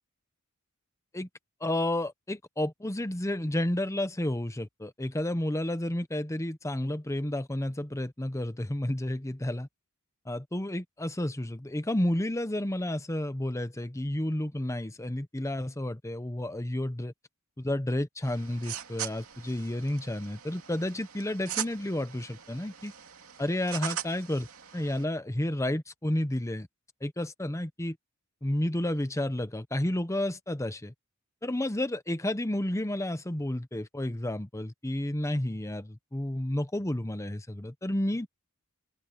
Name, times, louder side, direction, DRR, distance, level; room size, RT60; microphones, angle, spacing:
voice 1, 1.6-9.7 10.3-17.1 17.6-22.9 23.4-24.5 24.7-26.7 27.0-28.0 28.4-30.9 31.4-38.3, left 1 dB, 15° left, 0.9 m, -31 dB
sound 1, 18.2-25.0, right 10 dB, 65° right, 2.9 m, -41 dB
open air
head